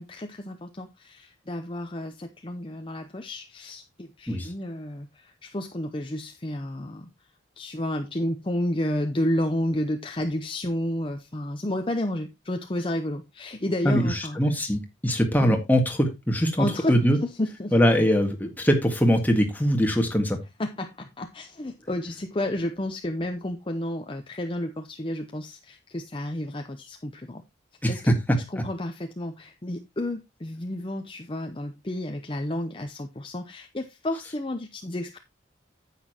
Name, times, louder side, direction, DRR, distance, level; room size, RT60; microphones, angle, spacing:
voice 1, 0.0-7.1 7.6-14.5 15.4-15.6 16.6-17.7 20.6-27.4 27.9-28.1 28.5-35.2, left 1 dB, 25° left, 0.7 m, -31 dB
voice 2, 13.8-17.2 17.7-20.4 27.8-28.4, equal, 10° left, 1.7 m, -22 dB
9.6 x 8.5 x 2.9 m
head